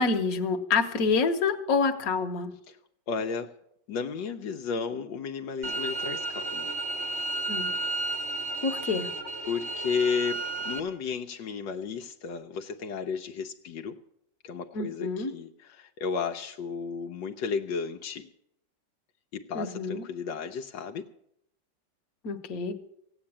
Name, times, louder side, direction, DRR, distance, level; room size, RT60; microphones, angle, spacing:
voice 1, 0.0-2.5 7.5-7.7 8.6-9.1 14.7-15.3 19.5-20.0 22.2-22.7, left 4 dB, 55° left, 5 dB, 1.5 m, -27 dB
voice 2, 3.1-3.5 3.9-6.7 9.5-14.0 14.4-18.3 19.3-21.1, left 5 dB, 80° left, 5 dB, 1.5 m, -33 dB
sound 1, 5.6-10.8, right 2 dB, 20° right, 1.1 m, -32 dB
16.0 x 8.8 x 8.6 m, 0.76 s
omnidirectional pair, 2.0 m